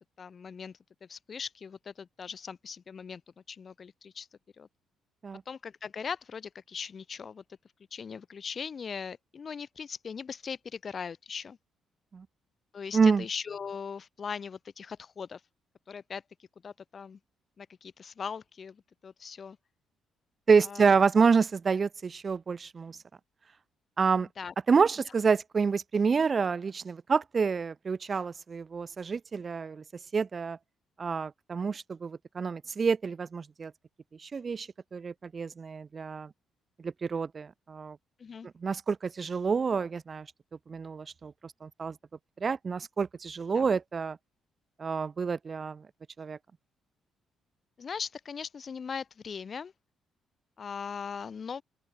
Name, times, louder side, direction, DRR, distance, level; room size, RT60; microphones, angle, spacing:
voice 1, 0.2-3.2 3.5-4.3 4.6-4.7 5.5-7.4 7.9-11.6 12.7-15.4 15.9-17.2 17.6-19.6 20.6-21.0 24.4-24.5 38.2-38.5 43.5-43.7 47.8-49.7 50.6-51.6, left 6 dB, 45° left, 1.1 m, -40 dB
voice 2, 12.9-13.2 20.5-23.0 24.0-24.3 24.7-29.8 30.1-30.6 31.0-33.7 34.2-36.3 36.8-38.0 38.6-40.3 40.7-41.3 41.6-42.0 42.4-44.2 44.8-45.8 46.2-46.4, right 5 dB, 40° right, 0.3 m, -28 dB
open air
cardioid pair, 90°, 0 cm